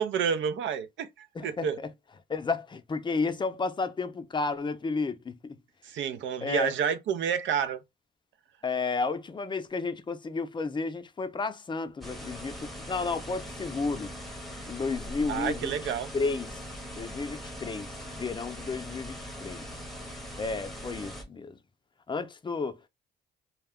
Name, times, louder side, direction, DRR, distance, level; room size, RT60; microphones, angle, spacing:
voice 1, 0.0-1.8 5.8-7.8 15.3-16.1, right 7 dB, 70° right, 0.5 m, -29 dB
voice 2, 1.4-1.9 2.3-5.6 6.4-6.7 8.6-14.1 14.7-15.7 16.1-16.6 17.0-19.7 20.4-21.6 22.1-22.9, left 4 dB, 25° left, 0.4 m, -32 dB
sound 1, 12.0-21.2, equal, ahead, 0.8 m, -41 dB
2.3 x 2.2 x 3.5 m
cardioid pair, 90°, 20 cm